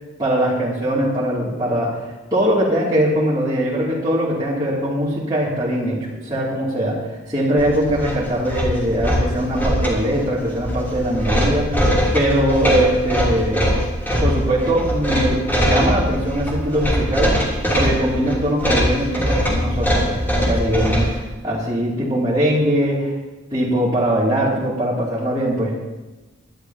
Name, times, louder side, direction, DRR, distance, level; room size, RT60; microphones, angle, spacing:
voice 1, 0.2-2.0 2.3-13.8 14.2-17.4 17.7-23.2 23.5-25.8, right 1 dB, 20° right, -9 dB, 2.7 m, -21 dB
sound 1, 7.6-21.2, equal, 10° left, 3.0 m, -21 dB
22.5 x 11.5 x 2.9 m, 1.1 s
head